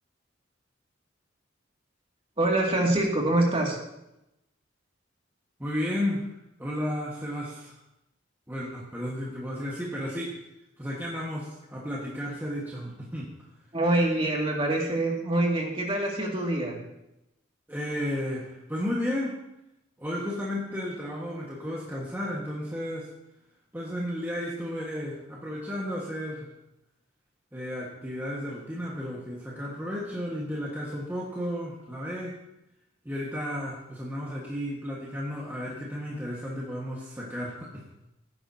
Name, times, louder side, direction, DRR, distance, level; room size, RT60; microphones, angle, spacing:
voice 1, 2.4-3.8 13.7-16.8, right 1 dB, 30° right, -2 dB, 2.3 m, -25 dB
voice 2, 5.6-7.8 8.5-10.3 10.8-13.3 17.7-19.4 20.0-23.1 23.7-26.5 27.5-32.4 33.0-37.8, equal, 10° right, -5 dB, 1.5 m, -33 dB
16.5 x 9.8 x 2.8 m, 0.87 s
head